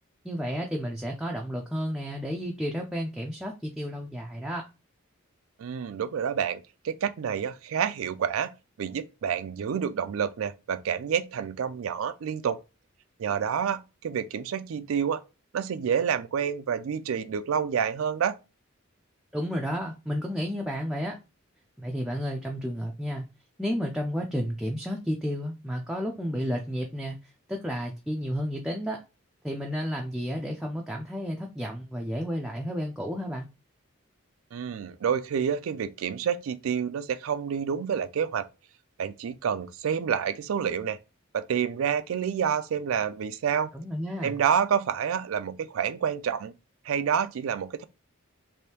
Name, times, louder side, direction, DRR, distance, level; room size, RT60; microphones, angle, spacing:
voice 1, 0.2-4.7 19.3-21.2 21.8-23.2 23.6-29.0 29.4-33.5 43.7-44.4, equal, 5° right, 0.4 m, -32 dB
voice 2, 5.6-8.5 8.8-12.6 13.2-15.2 15.5-18.4 34.5-38.5 39.0-41.0 41.3-43.7 44.2-46.5 46.9-47.8, right 7 dB, 90° right, 0.4 m, -28 dB
3.4 x 2.6 x 2.7 m
head